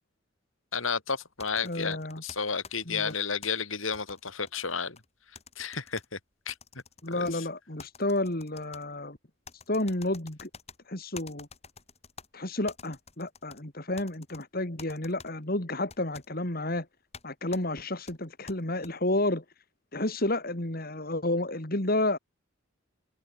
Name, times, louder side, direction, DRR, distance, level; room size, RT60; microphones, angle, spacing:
voice 1, 0.7-5.0 5.6-6.2 6.5-6.6 7.1-7.4, left 5 dB, 80° left, 3.9 m, -32 dB
sound 1, 1.4-3.5 3.9-5.1 5.4-6.1 6.5-7.4 7.8-8.8 9.5-10.8 11.2-12.3 12.7-13.6 14.0-14.4 14.8-15.3 15.9-16.3 17.1-17.2 17.5-17.6 18.1-18.9, left 5 dB, 30° left, 4.9 m, -48 dB
voice 2, 1.6-2.2 2.8-3.1 7.0-9.2 9.7-10.5 10.9-11.5 12.3-16.9 17.2-19.4 19.9-22.2, left 1 dB, 45° left, 2.9 m, -31 dB
open air
head